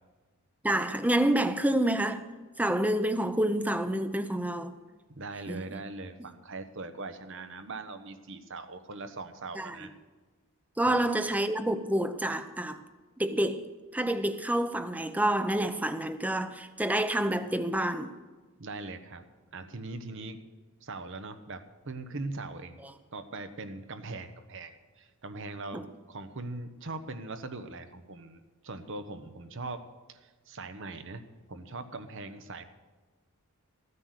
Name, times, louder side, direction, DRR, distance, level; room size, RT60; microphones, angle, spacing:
voice 1, 0.6-2.2 2.6-4.7 5.5-5.6 9.6-9.9 10.8-12.8 13.2-18.1 25.7-25.8, right 1 dB, 5° right, 0.6 m, -28 dB
voice 2, 5.1-9.9 10.8-11.0 18.6-19.3 19.5-20.4 20.8-22.8 23.1-29.8 30.1-32.7, right 3 dB, 60° right, 1.0 m, -41 dB
14.5 x 9.7 x 6.6 m
head